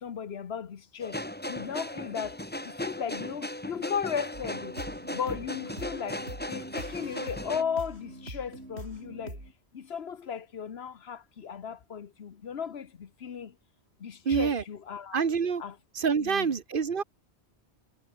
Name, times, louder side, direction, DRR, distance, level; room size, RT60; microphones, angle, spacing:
voice 1, 0.0-1.2 1.5-2.4 2.8-4.7 5.1-6.2 6.5-9.4 9.7-12.9 13.2-13.5 14.0-15.2 15.6-15.7 16.2-16.5, left 7 dB, 65° left, 1.2 m, -35 dB
sound 1, 1.0-7.6, left 1 dB, 10° left, 1.7 m, -37 dB
sound 2, 4.3-9.5, right 1 dB, 75° right, 7.5 m, -43 dB
voice 2, 14.2-14.6 15.1-15.6 15.9-17.0, right 6 dB, 55° right, 1.3 m, -26 dB
omnidirectional pair, 1.1 m